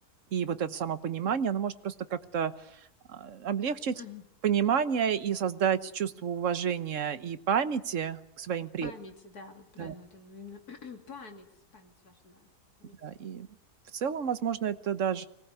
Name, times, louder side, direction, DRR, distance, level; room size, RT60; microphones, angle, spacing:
voice 1, 0.3-2.8 3.1-4.0 4.4-8.9 9.8-9.9 13.0-13.5 13.9-15.3, right 8 dB, 55° right, 12 dB, 1.4 m, -30 dB
voice 2, 3.9-4.3 8.8-12.5 12.8-13.0, left 4 dB, 80° left, 5 dB, 3.2 m, -47 dB
24.5 x 18.5 x 8.3 m, 0.75 s
omnidirectional pair, 1.6 m